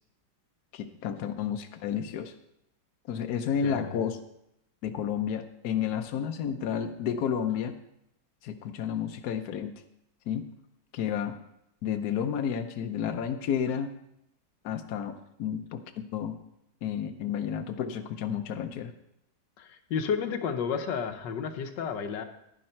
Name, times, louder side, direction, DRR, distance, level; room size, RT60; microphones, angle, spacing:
voice 1, 0.7-2.3 3.1-4.2 4.8-7.7 8.4-9.7 10.3-10.4 10.9-11.4 11.8-13.9 14.6-15.1 15.4-16.4 16.8-18.9, left 8 dB, 65° left, 6 dB, 1.2 m, -31 dB
voice 2, 3.6-4.0 19.6-22.2, left 6 dB, 85° left, 7 dB, 1.5 m, -32 dB
10.5 x 10.5 x 4.4 m, 0.81 s
omnidirectional pair, 1.9 m